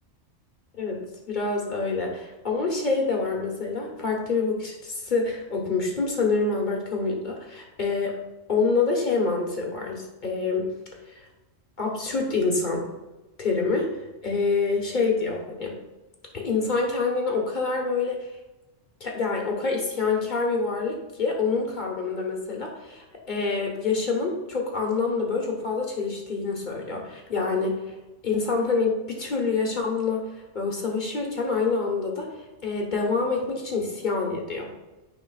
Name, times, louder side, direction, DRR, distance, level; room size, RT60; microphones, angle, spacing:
voice 1, 0.8-8.2 8.5-10.7 11.1-11.2 11.8-12.9 13.4-15.8 16.3-18.3 19.0-27.9 28.2-32.3 32.6-34.7, left 4 dB, 45° left, 0 dB, 1.4 m, -26 dB
9.4 x 5.1 x 2.4 m, 1.1 s
omnidirectional pair, 1.2 m